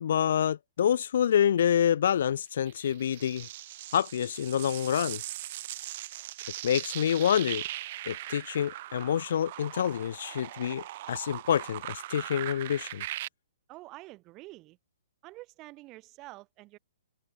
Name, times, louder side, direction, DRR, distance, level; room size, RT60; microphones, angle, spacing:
voice 1, 0.0-3.5 3.9-5.2 6.6-7.6 8.1-13.0, left 9 dB, 55° left, 0.5 m, -27 dB
sound 1, 2.7-13.3, right 15 dB, 45° right, 1.3 m, -40 dB
voice 2, 13.7-14.8 15.2-16.8, right 20 dB, 30° right, 5.4 m, -48 dB
open air
figure-of-eight pair, 120°, 0 cm